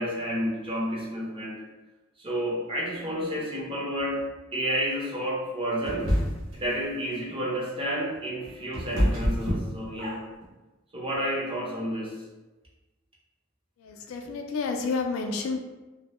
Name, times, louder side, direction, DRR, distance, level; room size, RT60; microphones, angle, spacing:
voice 1, 0.0-1.5 2.2-4.2 4.5-6.1 6.5-10.2 10.9-12.1, equal, 25° right, -5 dB, 0.6 m, -30 dB
sound 1, 5.9-6.6 8.1-10.4, equal, 80° right, 0.8 m, -27 dB
voice 2, 13.8-15.6, left 4 dB, 75° left, 4 dB, 0.3 m, -30 dB
2.1 x 2.0 x 2.9 m, 1.1 s
head